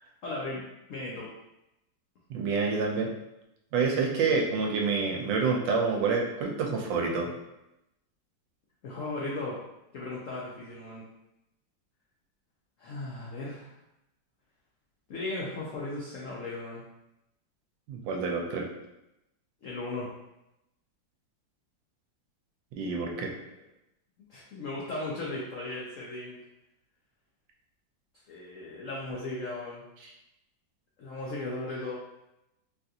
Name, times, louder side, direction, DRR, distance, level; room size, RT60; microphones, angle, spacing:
voice 1, 0.2-0.6 0.9-1.3 8.8-9.6 9.9-11.0 12.8-13.7 15.1-16.8 19.6-20.1 24.3-26.4 28.3-29.8 31.0-31.9, left 2 dB, 85° left, -5 dB, 0.7 m, -36 dB
voice 2, 2.3-3.1 3.7-7.3 17.9-18.7 22.8-23.3, right 4 dB, 80° right, 1 dB, 1.2 m, -27 dB
3.6 x 2.4 x 2.7 m, 0.89 s
omnidirectional pair, 2.1 m